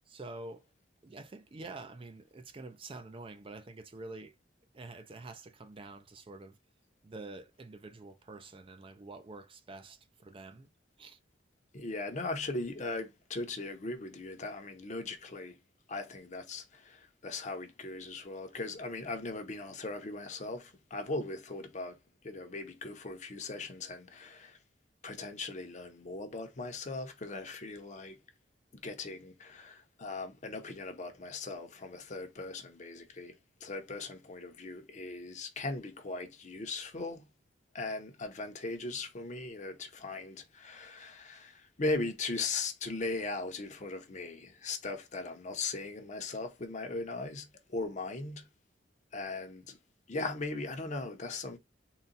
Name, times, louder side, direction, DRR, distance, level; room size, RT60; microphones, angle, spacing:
voice 1, 0.1-0.6 1.0-4.3 4.7-6.6 7.0-10.7 11.0-11.2, right 3 dB, 30° right, 0.4 m, -47 dB
voice 2, 11.7-15.5 15.9-22.0 22.2-24.6 25.0-28.2 28.8-37.2 37.7-48.5 49.1-49.8 50.1-51.6, left 3 dB, 40° left, 0.8 m, -39 dB
3.9 x 2.2 x 3.9 m
head